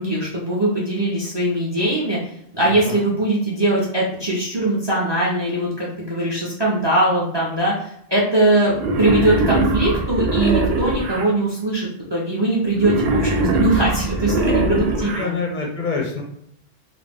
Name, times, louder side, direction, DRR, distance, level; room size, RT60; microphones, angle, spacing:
voice 1, 0.0-15.4, right 1 dB, 35° right, -5 dB, 0.4 m, -21 dB
Wild animals, 8.8-11.2 12.8-15.2, right 2 dB, 70° right, 0.8 m, -21 dB
voice 2, 14.6-16.2, left 4 dB, 60° left, 0 dB, 0.6 m, -26 dB
2.4 x 2.0 x 3.4 m, 0.70 s
omnidirectional pair, 1.1 m